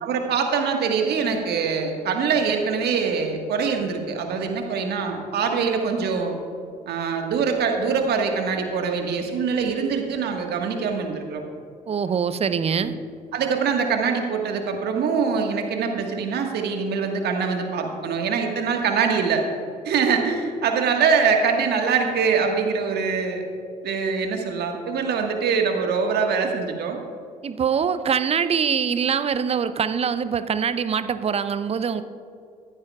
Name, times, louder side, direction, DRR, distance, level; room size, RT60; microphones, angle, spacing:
voice 1, 0.0-6.4 6.9-11.4 12.8-12.9 13.3-19.5 19.8-23.4 23.8-27.0, right 5 dB, 55° right, 3 dB, 1.6 m, -23 dB
voice 2, 11.9-12.9 27.4-32.0, right 7 dB, 30° right, 13 dB, 0.6 m, -23 dB
15.0 x 14.0 x 2.4 m, 2.4 s
figure-of-eight pair, 50°, 20 cm